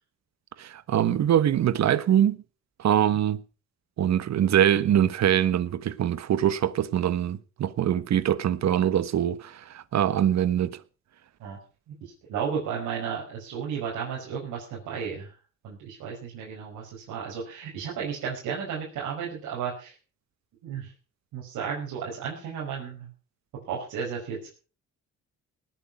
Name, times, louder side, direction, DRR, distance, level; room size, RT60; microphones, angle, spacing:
voice 1, 0.6-2.4 2.8-3.4 4.0-10.8, right 10 dB, 60° right, 1.3 m, -23 dB
voice 2, 11.9-15.3 15.6-19.9 20.6-20.9 21.3-23.1 23.7-24.5, right 7 dB, 85° right, 5.3 m, -33 dB
19.0 x 9.3 x 6.2 m
cardioid pair, 90°, 30 cm